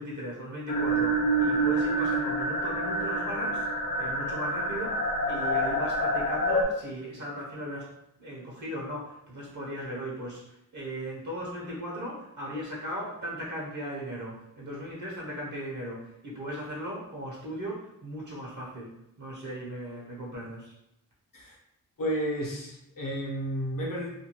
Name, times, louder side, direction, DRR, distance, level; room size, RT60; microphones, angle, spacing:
voice 1, 0.0-3.7 4.0-5.0 5.3-7.9 8.2-20.7, equal, 55° right, -5 dB, 0.8 m, -37 dB
sound 1, 0.7-6.6, right 1 dB, 85° left, 0.5 m, -27 dB
voice 2, 22.0-24.1, equal, 65° left, -3 dB, 0.9 m, -32 dB
2.6 x 2.3 x 2.9 m, 0.82 s
wide cardioid pair, 95°, 35 cm